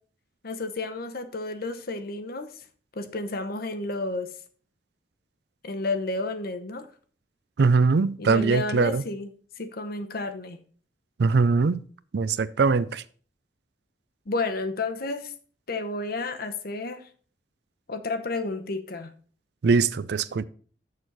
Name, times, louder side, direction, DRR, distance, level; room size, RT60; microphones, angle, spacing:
voice 1, 0.4-2.5 3.0-4.3 5.6-6.9 8.2-9.3 9.6-10.6 14.3-15.3 15.7-17.1 17.9-19.1, left 3 dB, 60° left, 0.9 m, -31 dB
voice 2, 7.6-9.0 11.2-11.8 12.1-13.0 19.6-20.4, right 4 dB, 70° right, 0.4 m, -21 dB
6.8 x 6.3 x 5.3 m
head